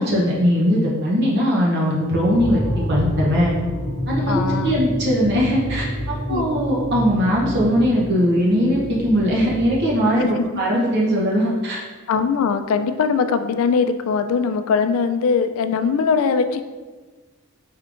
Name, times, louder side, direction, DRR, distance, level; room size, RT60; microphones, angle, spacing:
voice 1, 0.0-2.6 2.9-3.5 4.1-10.2 10.6-11.8, equal, 50° right, -4 dB, 0.7 m, -20 dB
sound 1, 2.3-9.9, equal, 25° left, 1.1 m, -28 dB
voice 2, 4.3-4.9 6.3-6.5 10.2-10.6 12.1-16.6, left 5 dB, 75° left, 9 dB, 0.3 m, -21 dB
4.4 x 3.6 x 2.5 m, 1.3 s
head